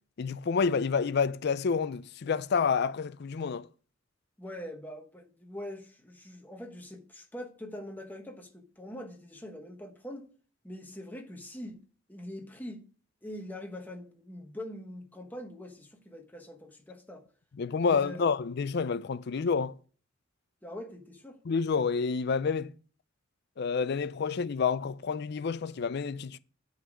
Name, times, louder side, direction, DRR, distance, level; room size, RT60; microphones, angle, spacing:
voice 1, 0.2-3.7 17.6-19.7 21.5-22.7 23.6-26.4, left 5 dB, 60° left, 0.4 m, -29 dB
voice 2, 4.4-10.3 10.6-11.8 12.1-12.9 13.2-17.2 17.8-18.4 20.6-21.4, left 1 dB, 10° left, 1.1 m, -43 dB
9.6 x 4.0 x 6.2 m
head